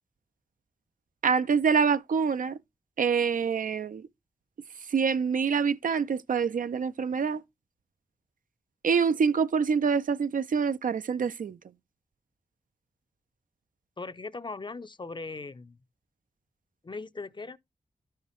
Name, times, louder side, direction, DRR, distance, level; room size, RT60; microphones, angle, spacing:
voice 1, 1.2-2.6 3.0-4.1 4.9-7.4 8.8-11.6, right 6 dB, 70° right, 0.5 m, -26 dB
voice 2, 14.0-15.8 16.8-17.6, left 3 dB, 35° left, 0.5 m, -39 dB
12.0 x 5.7 x 3.0 m
wide cardioid pair, 65°, 14 cm